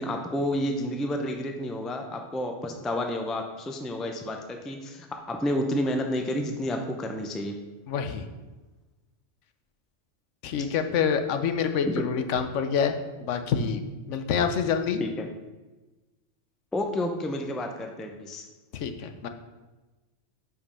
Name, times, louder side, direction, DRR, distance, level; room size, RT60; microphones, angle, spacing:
voice 1, 0.0-7.6 11.9-12.0 15.0-15.3 16.7-18.5, left 1 dB, ahead, 4 dB, 0.3 m, -30 dB
voice 2, 7.9-8.3 10.4-15.0 18.7-19.3, left 7 dB, 80° left, 8 dB, 1.0 m, -27 dB
5.3 x 5.2 x 5.4 m, 1.2 s
omnidirectional pair, 1.2 m